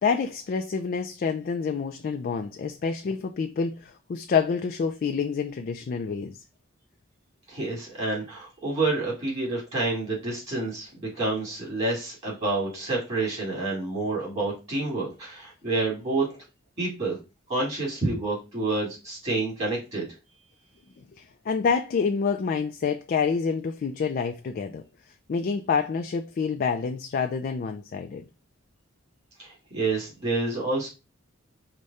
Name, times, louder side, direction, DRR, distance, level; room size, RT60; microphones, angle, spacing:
voice 1, 0.0-6.4 21.2-24.8 25.3-28.2, left 5 dB, 45° left, 0.3 m, -27 dB
voice 2, 7.5-16.4 16.8-17.2 17.5-20.1 29.4-30.9, right 2 dB, 35° right, 2.2 m, -28 dB
4.9 x 2.2 x 4.0 m
head